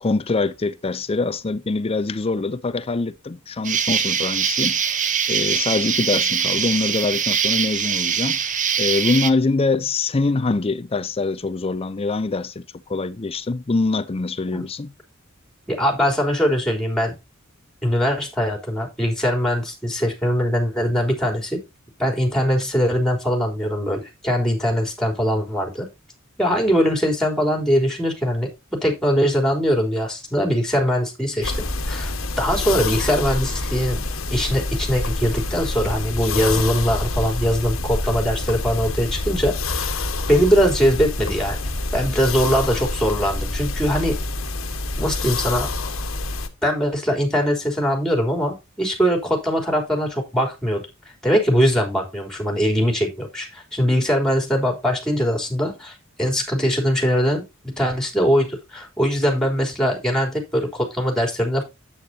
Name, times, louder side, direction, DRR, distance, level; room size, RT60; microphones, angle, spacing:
voice 1, 0.0-8.5 8.8-14.9, left 3 dB, 30° left, 0.5 m, -24 dB
Insect, 3.6-9.3, right 7 dB, 40° right, 1.0 m, -22 dB
voice 2, 15.7-17.1 17.8-21.6 22.0-25.9 26.4-34.0 34.3-41.6 41.9-44.1 45.0-45.7 46.6-50.8 51.2-61.6, equal, 5° left, 3.6 m, -21 dB
sound 1, 31.4-46.5, left 2 dB, 75° left, 1.4 m, -27 dB
9.9 x 8.6 x 2.8 m
head